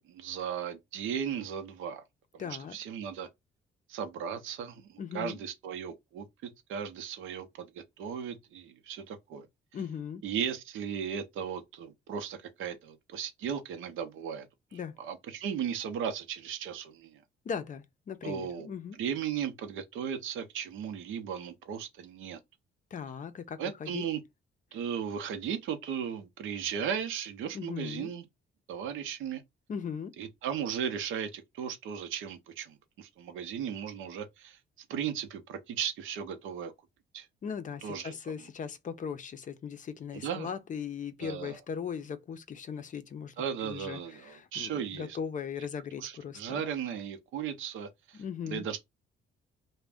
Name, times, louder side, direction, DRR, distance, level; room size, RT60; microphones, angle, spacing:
voice 1, 0.0-2.0 2.3-3.3 3.9-9.5 10.2-14.5 14.7-17.2 18.2-18.7 19.0-22.4 23.6-24.2 24.7-28.2 28.7-29.4 30.2-34.6 34.9-36.7 37.1-37.3 37.8-38.1 40.1-40.5 41.2-41.6 43.4-45.2 46.0-48.8, right 8 dB, 85° right, 0.6 m, -36 dB
voice 2, 2.4-2.8 5.0-5.4 9.7-10.2 14.7-14.9 17.4-19.0 22.9-24.0 27.5-28.1 29.7-30.1 37.4-43.3 43.6-46.6 48.1-48.7, left 7 dB, 40° left, 0.5 m, -38 dB
2.5 x 2.1 x 3.4 m
cardioid pair, 90°, 20 cm